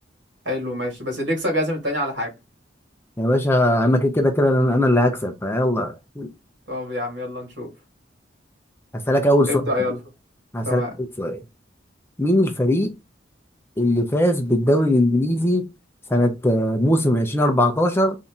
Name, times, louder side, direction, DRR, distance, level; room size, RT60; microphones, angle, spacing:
voice 1, 0.4-2.3 6.7-7.7 9.5-10.0 10.7-10.9, left 1 dB, 75° right, 2.3 m, -26 dB
voice 2, 3.2-6.3 9.1-9.5 10.5-11.4 12.2-12.9 13.8-15.7 16.1-18.1, left 1 dB, 15° left, 0.6 m, -20 dB
4.1 x 2.8 x 3.6 m
head